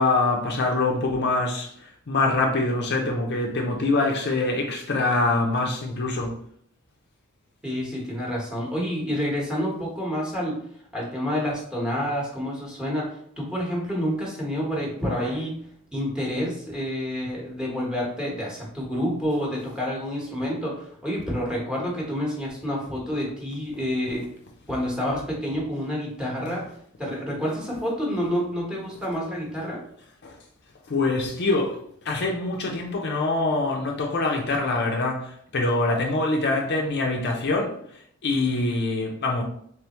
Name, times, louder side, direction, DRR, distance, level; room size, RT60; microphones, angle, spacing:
voice 1, 0.0-6.3 30.2-30.3 30.9-37.7 38.2-39.4, left 2 dB, 55° left, 0.6 m, -24 dB
voice 2, 7.6-10.6 10.9-15.6 15.9-24.3 24.7-26.6 27.0-29.8, equal, 5° right, 1.1 m, -28 dB
3.4 x 3.3 x 3.0 m
head